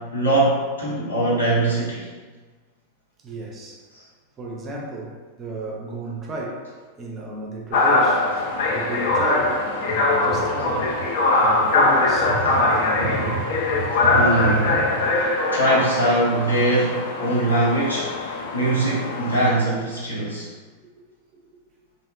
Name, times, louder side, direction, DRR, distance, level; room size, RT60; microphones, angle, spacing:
voice 1, 0.0-2.1 3.9-4.0 14.1-14.8 15.5-20.5, right 1 dB, 80° left, -7 dB, 0.8 m, -22 dB
voice 2, 3.2-3.8 4.4-10.9 11.2-13.4 19.2-19.3 21.5-21.6, right 2 dB, 25° right, -1 dB, 0.4 m, -34 dB
sound 1, 7.7-19.5, left 2 dB, 55° left, 0.3 m, -22 dB
sound 2, 8.2-15.2, right 4 dB, 85° right, 0.4 m, -34 dB
2.6 x 2.1 x 2.4 m, 1.4 s
figure-of-eight pair, 90°, 0 cm